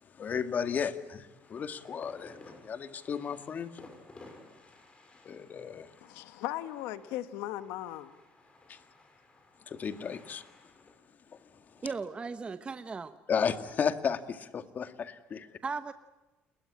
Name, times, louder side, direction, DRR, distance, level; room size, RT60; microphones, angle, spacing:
voice 1, 0.2-3.7 5.2-5.9 8.7-8.8 9.7-10.4 13.3-15.5, left 7 dB, 40° left, 2.0 m, -33 dB
sound 1, 1.3-12.8, left 2 dB, 25° left, 6.6 m, -56 dB
voice 2, 6.0-8.1 8.7-8.8, left 14 dB, 85° left, 1.4 m, -38 dB
voice 3, 11.8-13.2 15.6-15.9, right 4 dB, 25° right, 1.1 m, -36 dB
29.5 x 21.5 x 8.8 m
cardioid pair, 105°, 4 cm